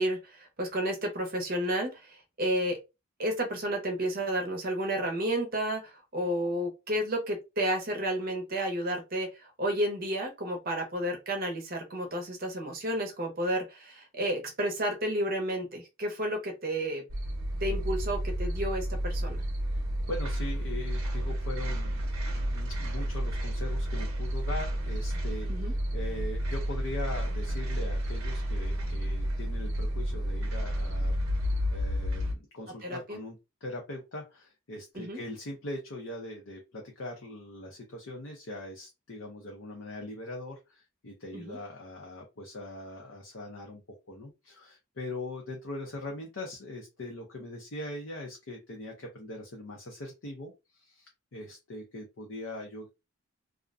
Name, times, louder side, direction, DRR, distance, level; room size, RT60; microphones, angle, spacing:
voice 1, 0.0-2.8 3.2-17.0 17.6-19.4 25.5-25.7 32.8-33.2 34.9-35.2 41.3-41.6, right 1 dB, 40° right, 0.6 m, -31 dB
sound 1, 17.1-32.3, equal, 80° right, 0.6 m, -31 dB
voice 2, 19.7-52.9, left 1 dB, 65° left, 0.5 m, -41 dB
2.4 x 2.1 x 2.4 m
head